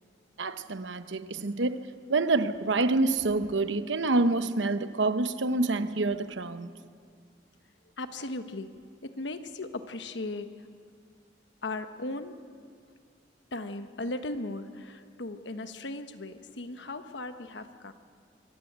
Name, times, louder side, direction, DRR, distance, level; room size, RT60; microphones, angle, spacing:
voice 1, 0.4-6.7, right 3 dB, 90° right, 1.0 m, -27 dB
voice 2, 8.0-10.6 11.6-12.5 13.5-17.9, left 2 dB, 80° left, 1.2 m, -37 dB
24.5 x 16.5 x 8.0 m
head